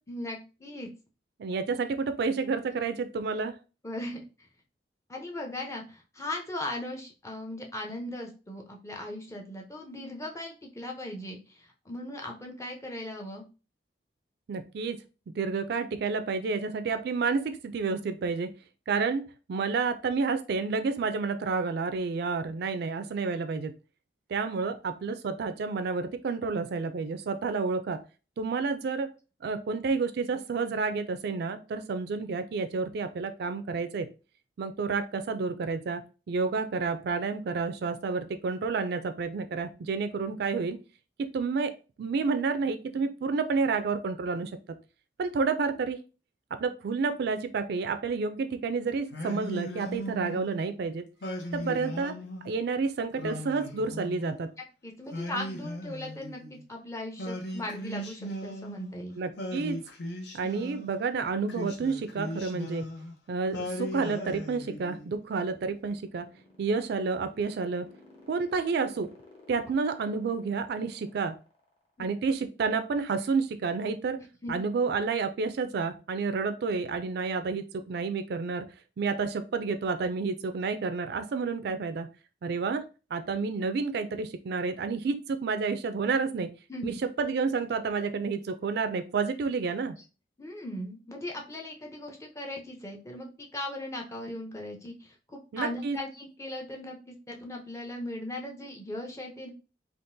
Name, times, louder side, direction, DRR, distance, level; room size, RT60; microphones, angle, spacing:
voice 1, 0.1-0.9 3.8-4.5 5.1-13.5 51.6-51.7 54.8-59.2 72.0-72.1 74.4-74.6 86.7-87.0 90.4-99.5, left 1 dB, 15° left, 1 dB, 0.6 m, -38 dB
voice 2, 1.4-3.5 14.5-15.0 15.3-18.5 18.9-23.7 24.3-28.0 28.4-29.1 29.4-34.1 34.6-36.0 36.3-40.8 41.2-41.7 42.0-44.5 45.2-46.0 46.6-51.0 51.5-52.1 52.4-54.5 59.2-59.8 60.3-62.9 63.3-66.3 66.6-67.9 68.3-69.1 69.5-71.4 72.0-74.2 74.5-78.7 79.0-82.1 82.4-82.8 83.1-86.5 86.8-90.0 95.5-96.0, right 4 dB, 65° right, 10 dB, 0.4 m, -30 dB
Singing, 49.1-50.6 51.2-52.5 53.1-54.5 55.1-56.6 57.2-59.0 59.4-61.0 61.5-63.1 63.5-65.1, equal, 70° left, 0.7 m, -37 dB
sound 1, 65.6-71.9, left 2 dB, 35° left, 1.0 m, -56 dB
3.7 x 2.5 x 2.6 m, 0.33 s
head